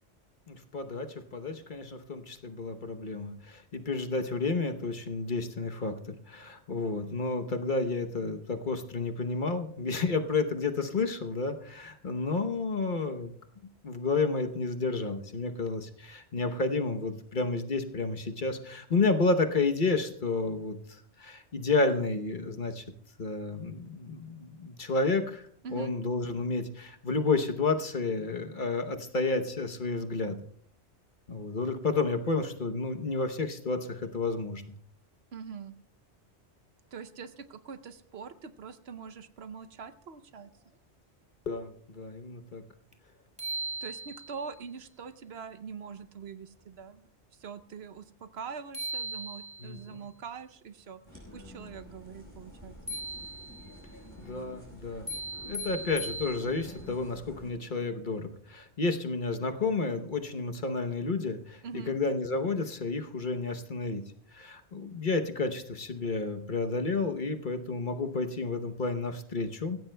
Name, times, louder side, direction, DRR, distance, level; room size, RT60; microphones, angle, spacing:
voice 1, 0.5-13.3 13.8-22.8 23.2-25.4 25.7-30.4 31.3-34.6 41.5-42.6 49.6-50.0 54.2-55.1 55.5-64.0 64.3-69.8, left 3 dB, 45° left, 6 dB, 1.0 m, -31 dB
voice 2, 35.3-35.7 36.9-40.5 43.8-47.1 47.3-51.0 51.3-53.0 61.6-62.0, right 6 dB, 65° right, 12 dB, 1.0 m, -43 dB
sound 1, 42.9-43.0 43.4-44.5 48.4-48.5 48.7-49.8 52.9-53.8 55.1-56.8, right 1 dB, 5° right, 1.7 m, -38 dB
sound 2, 51.0-57.5, left 1 dB, 15° left, 5.0 m, -49 dB
25.5 x 15.5 x 2.2 m, 0.64 s
omnidirectional pair, 1.2 m